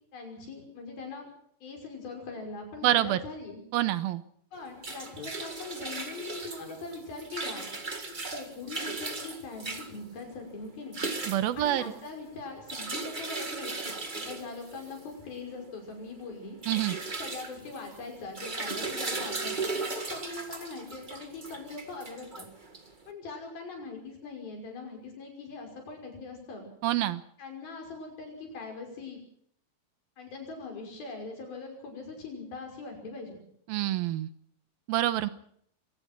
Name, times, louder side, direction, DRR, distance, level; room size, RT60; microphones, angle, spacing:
voice 1, 0.1-1.3 1.6-3.6 4.5-7.7 8.1-11.0 11.6-13.7 14.1-16.6 17.2-19.5 19.9-22.5 23.1-26.7 27.4-29.2 30.2-33.4, left 3 dB, 75° left, 3 dB, 7.6 m, -41 dB
voice 2, 2.8-3.2 3.7-4.2 11.3-11.8 16.7-17.0 26.8-27.2 33.7-34.3 34.9-35.3, right 14 dB, 80° right, 13 dB, 2.9 m, -26 dB
sound 1, 4.5-23.1, right 3 dB, 35° right, 0.7 m, -37 dB
25.0 x 18.5 x 6.1 m, 0.66 s
omnidirectional pair, 4.3 m